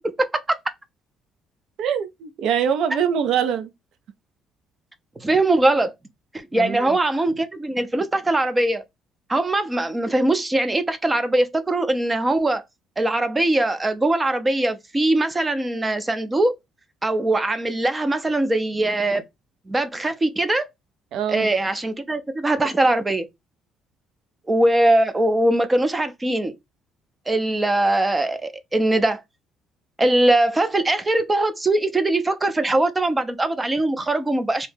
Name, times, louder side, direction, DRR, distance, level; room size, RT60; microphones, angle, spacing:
voice 1, 1.8-3.7 6.5-7.0 21.1-21.5, right 8 dB, 70° right, 0.5 m, -23 dB
voice 2, 5.2-5.9 6.3-8.8 9.3-12.6 13.0-16.5 17.0-19.2 19.7-20.7 21.3-23.3 24.5-26.5 27.3-29.2 30.0-34.7, right 2 dB, 15° right, 0.5 m, -21 dB
2.8 x 2.1 x 3.2 m
cardioid pair, 110°, 0 cm